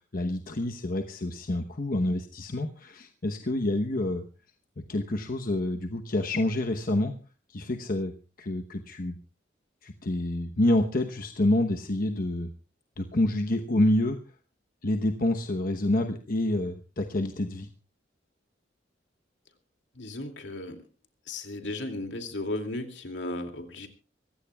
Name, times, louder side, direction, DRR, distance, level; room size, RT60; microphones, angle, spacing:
voice 1, 0.1-4.2 4.9-7.1 7.5-8.1 8.4-9.2 9.8-12.5 13.0-14.2 14.8-17.7, left 1 dB, 50° left, 5 dB, 1.0 m, -27 dB
voice 2, 20.0-20.8 21.3-23.9, left 2 dB, 75° left, 5 dB, 2.5 m, -35 dB
25.0 x 16.0 x 2.4 m, 0.35 s
head